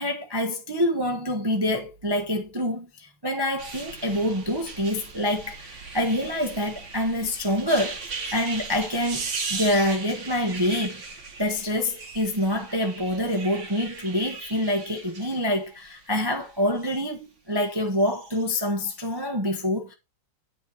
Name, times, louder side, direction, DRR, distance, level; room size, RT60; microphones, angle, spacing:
voice 1, 0.0-8.0 8.3-11.0 11.4-19.9, left 1 dB, 15° right, 0.9 m, -26 dB
sound 1, 3.6-17.0 17.9-18.4 19.0-19.1, right 4 dB, 40° right, 1.4 m, -38 dB
9.3 x 4.5 x 4.7 m
omnidirectional pair, 2.3 m